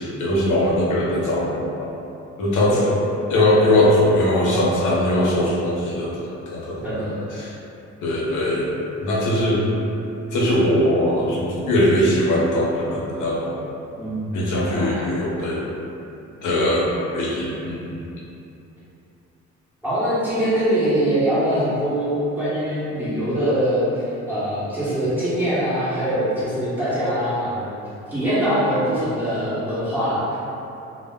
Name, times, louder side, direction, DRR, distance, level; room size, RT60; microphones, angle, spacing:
voice 1, 0.0-1.9 2.4-2.8 3.3-6.8 7.4-7.5 8.0-8.7 9.0-9.6 10.3-13.5 14.3-15.6 16.4-18.0, left 1 dB, 80° left, -5 dB, 0.7 m, -20 dB
voice 2, 6.8-7.2 14.0-15.0 19.8-27.8 28.1-30.4, equal, 5° right, -13 dB, 0.9 m, -23 dB
2.1 x 2.1 x 3.4 m, 2.8 s
cardioid pair, 90°, 30 cm